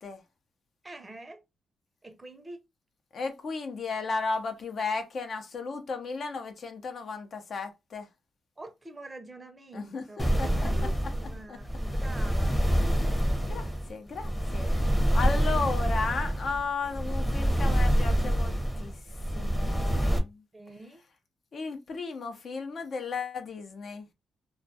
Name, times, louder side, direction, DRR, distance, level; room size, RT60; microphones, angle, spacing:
voice 1, 0.8-1.4 2.0-2.6 8.6-12.5 20.5-21.0, right 1 dB, 20° right, 0.6 m, -45 dB
voice 2, 3.1-8.1 9.7-10.0 10.4-10.5 11.5-11.6 13.5-18.9 19.3-20.4 21.5-24.0, left 4 dB, 55° left, 0.5 m, -34 dB
sound 1, 10.2-20.2, equal, 15° left, 0.7 m, -27 dB
2.2 x 2.2 x 2.6 m
cardioid pair, 80°, 0 cm